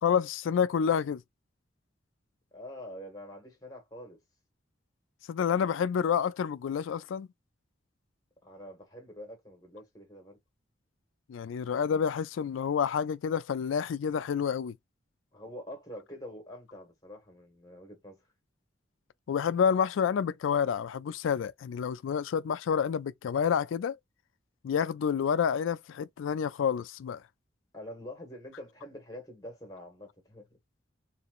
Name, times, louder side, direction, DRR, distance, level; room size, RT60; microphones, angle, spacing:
voice 1, 0.0-1.2 5.3-7.3 11.3-14.8 19.3-24.0 24.6-27.2, left 7 dB, 85° left, 0.3 m, -28 dB
voice 2, 2.5-4.2 8.4-10.4 15.3-18.3 27.7-30.6, left 1 dB, 20° left, 1.6 m, -46 dB
3.3 x 2.9 x 2.4 m
head